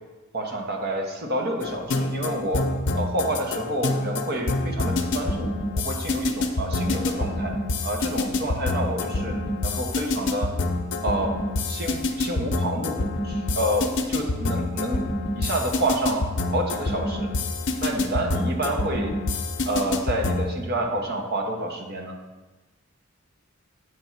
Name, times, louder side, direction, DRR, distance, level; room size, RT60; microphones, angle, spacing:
voice 1, 0.3-2.6 2.9-7.6 7.8-10.5 11.0-11.3 11.7-15.1 15.3-16.3 16.5-17.3 17.8-19.1 19.7-22.2, right 1 dB, 55° right, 2 dB, 1.0 m, -28 dB
sound 1, 1.6-20.5, left 2 dB, 65° left, 0.7 m, -27 dB
8.0 x 3.4 x 5.8 m, 1.2 s
head